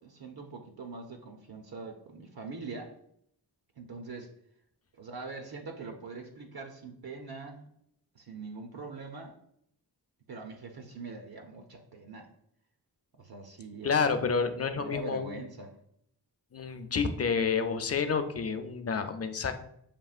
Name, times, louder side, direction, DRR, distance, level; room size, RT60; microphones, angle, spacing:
voice 1, 0.0-3.0 3.8-4.3 4.9-7.7 8.1-9.4 10.3-12.3 13.2-13.9 14.7-15.7, right 3 dB, 65° right, 3 dB, 0.6 m, -43 dB
voice 2, 13.8-15.4 16.5-19.5, left 5 dB, 40° left, 8 dB, 0.5 m, -29 dB
6.7 x 2.8 x 2.4 m, 0.72 s
wide cardioid pair, 70°, 41 cm